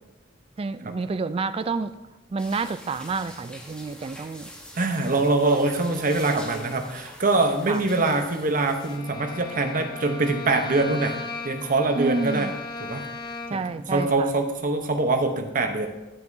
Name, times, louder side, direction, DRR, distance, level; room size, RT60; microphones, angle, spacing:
voice 1, 0.6-1.9 2.3-4.5 5.1-5.6 6.2-6.7 7.7-7.8 11.9-12.5 13.5-14.3, right 4 dB, 30° right, 12 dB, 0.3 m, -30 dB
sound 1, 2.4-9.0, left 1 dB, 5° left, 1.0 m, -45 dB
voice 2, 4.8-11.1 11.4-12.5 12.8-13.1 13.5-15.9, right 2 dB, 45° right, 5 dB, 0.8 m, -24 dB
Bowed string instrument, 8.8-13.8, left 3 dB, 20° left, 0.6 m, -37 dB
10.0 x 7.7 x 2.7 m, 1.0 s
head